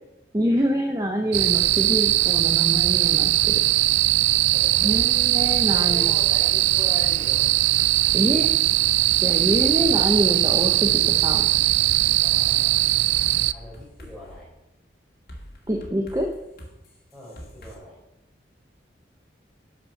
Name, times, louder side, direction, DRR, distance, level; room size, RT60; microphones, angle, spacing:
voice 1, 0.3-3.6 4.8-6.0 8.1-8.5 9.2-11.6 15.7-16.3, equal, 20° right, 2 dB, 0.8 m, -25 dB
sound 1, 1.3-2.0 2.9-4.3 4.9-6.1 7.0-8.3 8.8-10.2 11.1-12.5 13.2-14.4 15.3-17.7, equal, 55° left, 2.3 m, -44 dB
sound 2, 1.3-13.5, right 16 dB, 75° right, 0.3 m, -20 dB
voice 2, 4.5-7.5 12.2-12.8 13.5-14.5 17.1-18.0, left 1 dB, ahead, -7 dB, 4.6 m, -41 dB
11.5 x 5.2 x 6.6 m, 0.89 s
head